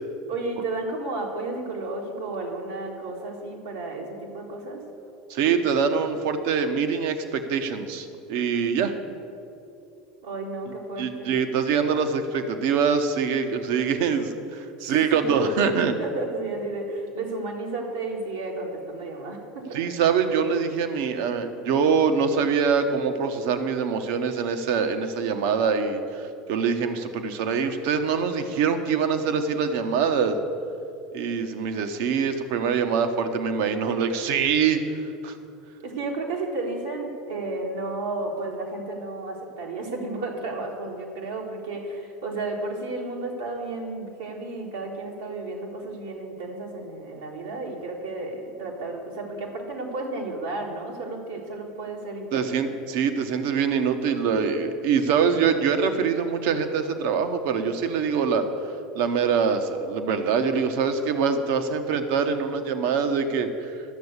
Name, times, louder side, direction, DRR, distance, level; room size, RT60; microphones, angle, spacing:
voice 1, 0.2-4.9 10.2-11.3 15.1-15.3 16.0-20.0 35.8-52.7, right 2 dB, 85° right, -4 dB, 1.7 m, -33 dB
voice 2, 5.3-8.9 11.0-15.9 19.7-30.4 31.1-34.8 35.2-35.4 52.3-58.5 58.9-63.7, right 6 dB, 65° right, 8 dB, 1.0 m, -24 dB
11.5 x 6.9 x 8.1 m, 2.6 s
hypercardioid pair, 80°, 0 cm